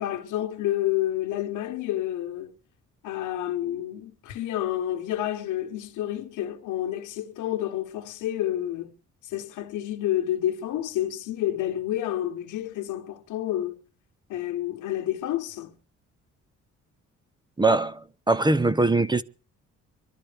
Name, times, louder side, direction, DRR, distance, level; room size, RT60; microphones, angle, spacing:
voice 1, 0.0-2.5 3.0-8.9 9.2-13.8 14.3-15.7, left 12 dB, 85° left, 1.2 m, -29 dB
voice 2, 17.6-19.2, right 3 dB, 15° right, 0.6 m, -22 dB
25.5 x 12.0 x 3.4 m
cardioid pair, 90°, 30 cm